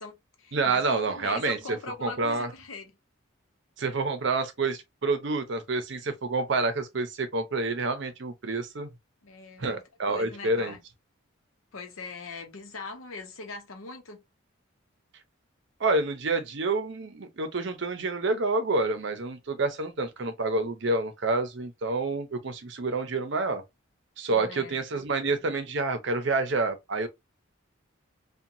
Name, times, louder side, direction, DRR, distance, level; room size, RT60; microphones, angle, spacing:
voice 1, 0.0-2.9 9.2-9.8 10.1-10.8 11.7-14.2 24.3-24.8, left 3 dB, 90° left, 0.8 m, -41 dB
voice 2, 0.5-1.6 2.0-2.5 3.8-8.9 9.6-10.7 15.8-23.6 24.2-27.1, right 3 dB, 60° right, 0.6 m, -28 dB
2.8 x 2.2 x 2.5 m
head